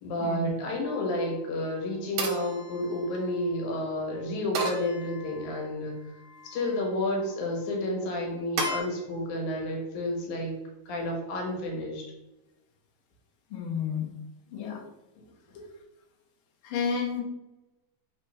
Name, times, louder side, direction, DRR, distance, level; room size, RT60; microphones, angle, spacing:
voice 1, 0.0-6.0 6.4-10.5 10.9-12.0 15.2-15.3 15.5-15.6, left 1 dB, 85° left, 0 dB, 2.4 m, -31 dB
Knife Sword Metal Hit Scrape Twang Pack, 0.8-1.3 2.2-3.5 4.6-5.6 6.2-6.8 8.6-8.8, right 2 dB, 75° right, 1.5 m, -35 dB
voice 2, 13.5-14.1 14.5-14.8 16.6-17.2, left 6 dB, 65° left, -2 dB, 1.3 m, -31 dB
4.3 x 3.2 x 3.3 m, 1.0 s
omnidirectional pair, 3.3 m